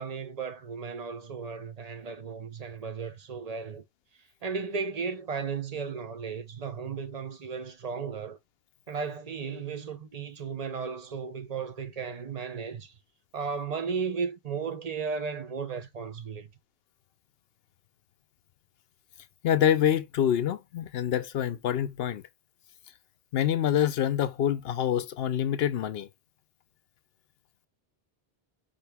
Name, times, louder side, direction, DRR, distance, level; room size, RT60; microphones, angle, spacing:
voice 1, 0.0-3.8 4.4-8.4 8.9-12.9 13.3-16.5, right 5 dB, 40° right, 0.8 m, -35 dB
voice 2, 19.4-22.2 23.3-26.1, left 10 dB, 70° left, 0.8 m, -26 dB
5.2 x 2.9 x 3.4 m
omnidirectional pair, 1.1 m